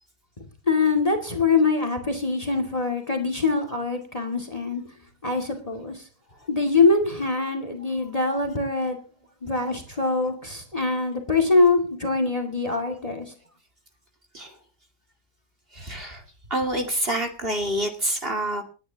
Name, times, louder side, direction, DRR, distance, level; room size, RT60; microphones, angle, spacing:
voice 1, 0.7-4.8 5.2-6.1 6.5-9.0 9.4-13.3, left 3 dB, 20° left, 5 dB, 2.4 m, -23 dB
voice 2, 15.7-16.2 16.5-18.6, right 1 dB, 35° right, 3 dB, 2.5 m, -27 dB
28.0 x 10.5 x 2.9 m, 0.34 s
omnidirectional pair, 1.8 m